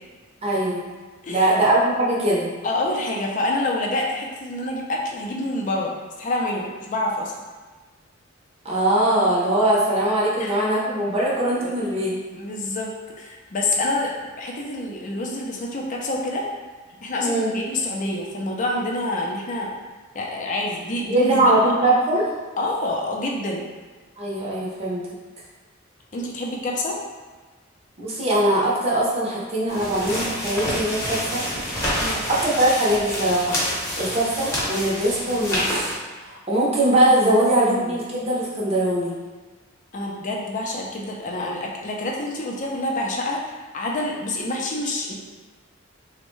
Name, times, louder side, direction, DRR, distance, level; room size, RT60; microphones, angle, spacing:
voice 1, 0.4-0.8 1.3-2.5 8.6-12.1 17.2-17.5 21.0-22.3 24.2-25.1 28.0-31.4 32.3-35.9 36.2-39.2, right 1 dB, 30° right, -5 dB, 0.7 m, -21 dB
voice 2, 2.6-5.9 6.2-7.3 10.4-10.6 11.6-11.7 12.3-12.9 13.2-16.5 17.0-19.7 20.1-21.7 22.6-23.6 26.1-27.0 32.0-32.2 37.2-38.2 39.9-45.1, left 2 dB, 40° left, -1 dB, 0.5 m, -27 dB
sound 1, 29.7-36.0, equal, 15° left, 0.8 m, -27 dB
3.4 x 2.1 x 3.0 m, 1.3 s
head